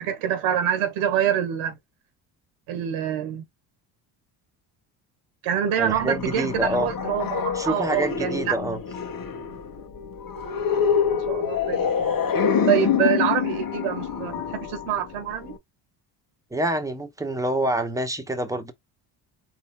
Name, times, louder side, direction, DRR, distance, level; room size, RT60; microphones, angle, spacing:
voice 1, 0.0-1.8 2.7-3.5 5.4-8.6 11.1-12.2 12.7-15.5, right 10 dB, 80° right, 1.5 m, -26 dB
sound 1, 5.8-15.6, left 7 dB, 45° left, 1.7 m, -26 dB
voice 2, 5.8-6.9 7.5-8.8 16.5-18.7, right 1 dB, 5° right, 1.5 m, -26 dB
5.1 x 4.3 x 2.3 m
supercardioid pair, 80°, 49 cm